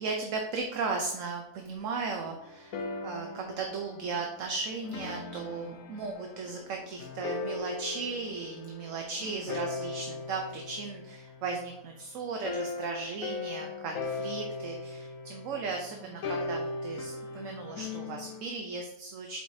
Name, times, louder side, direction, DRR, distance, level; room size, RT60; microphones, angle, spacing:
voice 1, 0.0-2.8 3.0-19.4, right 4 dB, 60° right, 3 dB, 1.0 m, -36 dB
sound 1, 2.2-11.9 12.4-18.4, left 3 dB, 65° left, 1.0 m, -39 dB
7.7 x 4.9 x 2.7 m, 0.83 s
omnidirectional pair, 1.7 m